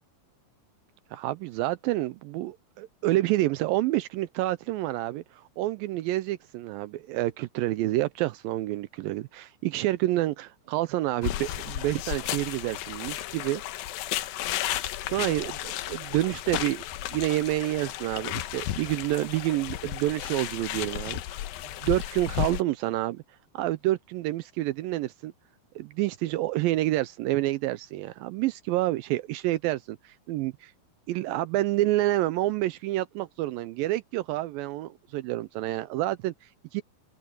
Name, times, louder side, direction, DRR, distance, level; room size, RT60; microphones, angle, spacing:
voice 1, 1.1-13.6 15.1-16.8 17.1-21.4 21.8-23.2 23.5-25.3 25.8-30.7 31.1-36.8, right 16 dB, 80° right, 2.2 m, -28 dB
sound 1, 11.2-22.6, left 13 dB, 80° left, 2.6 m, -33 dB
omnidirectional pair, 4.4 m